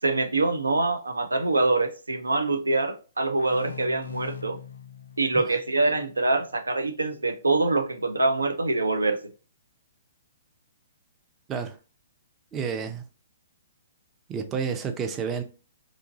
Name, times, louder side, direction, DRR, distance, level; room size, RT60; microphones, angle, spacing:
voice 1, 0.0-4.6 5.2-9.2, right 2 dB, 85° right, 0.5 m, -25 dB
sound 1, 3.4-6.8, left 7 dB, 75° left, 0.3 m, -42 dB
voice 2, 12.5-13.0 14.3-15.4, right 6 dB, 20° right, 0.5 m, -30 dB
3.0 x 2.5 x 3.7 m
figure-of-eight pair, 125°, 0 cm